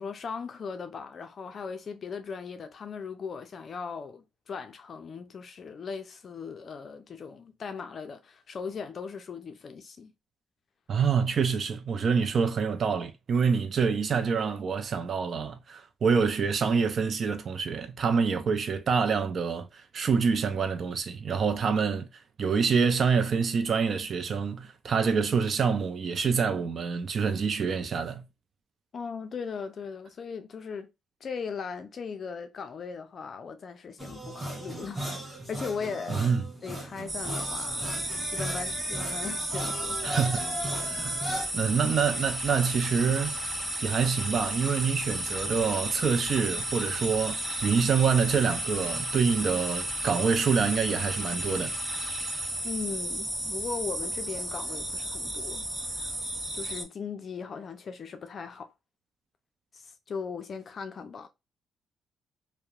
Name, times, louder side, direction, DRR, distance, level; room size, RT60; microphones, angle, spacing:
voice 1, 0.0-10.1 28.9-30.9 31.2-36.3 36.6-38.1 38.3-40.0 52.6-56.2 56.5-58.7 59.7-61.3, left 5 dB, 50° left, 0.4 m, -38 dB
voice 2, 10.9-22.1 22.4-28.2 36.1-36.4 40.0-40.5 40.8-41.2 41.5-43.4 43.8-51.8, right 6 dB, 50° right, 0.4 m, -26 dB
sound 1, 34.0-41.5, right 1 dB, 15° right, 1.1 m, -36 dB
sound 2, 37.1-56.8, right 1 dB, 35° right, 1.6 m, -33 dB
sound 3, 41.2-53.1, equal, 10° left, 1.3 m, -42 dB
2.7 x 2.0 x 2.4 m
cardioid pair, 90°, 0 cm